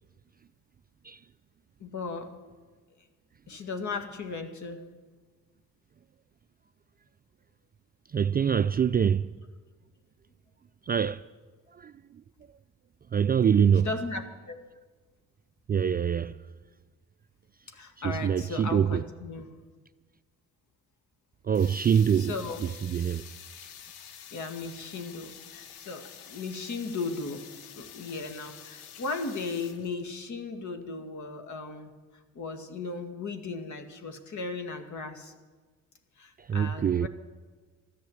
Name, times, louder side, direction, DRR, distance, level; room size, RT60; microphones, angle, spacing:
voice 1, 1.8-2.4 3.5-4.9 13.7-14.6 17.7-19.5 22.1-22.7 24.3-27.4 27.8-31.9 32.3-35.3 36.2-37.1, left 4 dB, 55° left, 2.0 m, -36 dB
voice 2, 8.1-9.3 10.9-11.2 11.7-11.9 13.1-13.9 15.7-16.4 18.0-19.0 21.4-22.3 22.8-23.2 36.4-37.1, right 8 dB, 25° right, 0.4 m, -24 dB
sound 1, 21.5-30.2, left 9 dB, 85° left, 1.1 m, -48 dB
13.5 x 10.5 x 8.0 m
supercardioid pair, 65°, 36 cm